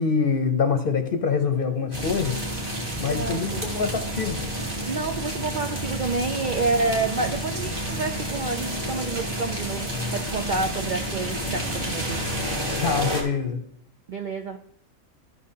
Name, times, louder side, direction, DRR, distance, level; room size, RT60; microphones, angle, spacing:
voice 1, 0.0-2.4 3.0-4.4 12.8-13.6, left 5 dB, 45° left, 7 dB, 0.8 m, -25 dB
sound 1, 1.9-13.2, right 1 dB, 40° right, 2.5 m, -30 dB
voice 2, 3.1-3.7 4.8-12.2 14.1-14.6, right 3 dB, 60° right, 5 dB, 0.5 m, -29 dB
13.5 x 6.0 x 2.8 m, 0.74 s
omnidirectional pair, 1.5 m